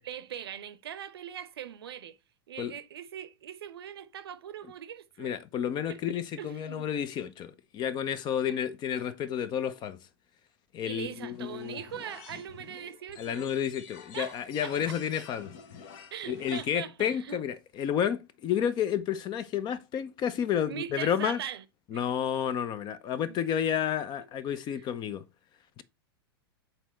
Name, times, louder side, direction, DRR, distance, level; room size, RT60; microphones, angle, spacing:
voice 1, 0.0-2.2 2.5-5.4 5.9-6.0 6.4-6.8 8.5-8.6 10.9-13.5 14.1-14.4 14.6-15.0 16.1-17.4 20.7-21.6 21.9-22.0 23.2-23.4 24.7-24.9, right 9 dB, 75° right, 0.6 m, -41 dB
voice 2, 5.2-10.1 10.7-11.8 13.2-15.5 16.3-21.4 21.9-25.3 25.8-25.9, left 9 dB, 35° left, 0.6 m, -31 dB
sound 1, 11.3-16.7, left 7 dB, 55° left, 1.0 m, -49 dB
6.0 x 4.0 x 4.2 m
hypercardioid pair, 100°, 13 cm